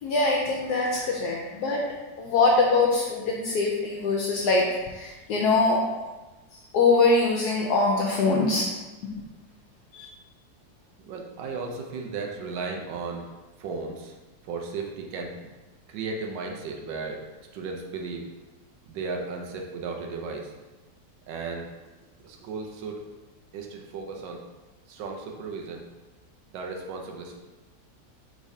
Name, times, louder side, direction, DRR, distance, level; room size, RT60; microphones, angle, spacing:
voice 1, 0.0-1.8 2.2-5.8 6.7-8.7 9.0-9.1 9.9-10.1, left 3 dB, 75° left, -1 dB, 1.0 m, -23 dB
voice 2, 11.0-13.3 13.6-14.1 14.5-15.4 15.9-17.2 17.5-18.3 18.9-20.5 21.3-21.7 22.2-23.0 23.5-24.4 24.9-25.9 26.5-27.4, right 4 dB, 90° right, 1 dB, 1.3 m, -35 dB
5.0 x 3.6 x 2.6 m, 1.2 s
omnidirectional pair, 1.9 m